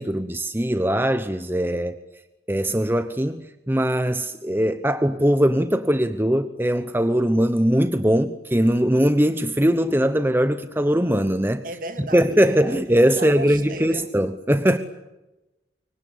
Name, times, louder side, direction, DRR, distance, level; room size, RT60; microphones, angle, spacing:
voice 1, 0.0-2.0 2.5-11.6 12.1-14.8, equal, 10° right, 10 dB, 1.0 m, -21 dB
voice 2, 11.6-12.8 13.2-14.1 14.7-14.8, right 1 dB, 50° right, 8 dB, 2.4 m, -35 dB
25.5 x 23.5 x 8.5 m, 1.0 s
head